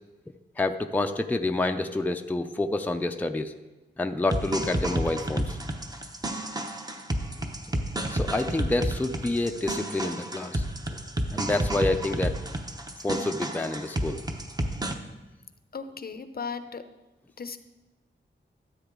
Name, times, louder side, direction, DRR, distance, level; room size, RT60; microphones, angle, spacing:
voice 1, 0.6-3.5 4.0-5.6 8.1-10.6 10.9-11.0 11.3-12.4 13.0-14.2, left 2 dB, 10° left, 5 dB, 0.5 m, -28 dB
sound 1, 4.3-14.9, right 1 dB, 20° right, 0.8 m, -31 dB
voice 2, 15.7-16.8 17.4-17.6, left 5 dB, 50° left, 10 dB, 0.6 m, -36 dB
13.0 x 8.0 x 3.8 m, 1.1 s
wide cardioid pair, 90°, 20 cm